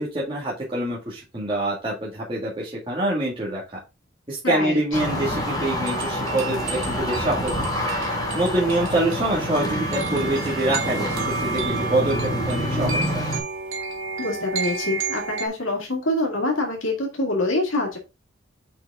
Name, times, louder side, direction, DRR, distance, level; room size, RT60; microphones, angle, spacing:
voice 1, 0.0-3.6 4.3-7.7 8.3-11.2 11.4-13.0, right 1 dB, 25° right, -7 dB, 2.0 m, -25 dB
voice 2, 4.4-4.8 14.2-18.0, left 2 dB, 75° left, 0 dB, 2.1 m, -25 dB
sound 1, 4.9-13.4, equal, 20° left, 2.6 m, -27 dB
sound 2, 5.8-15.5, right 4 dB, 90° right, 1.7 m, -31 dB
6.0 x 5.6 x 3.6 m, 0.26 s
head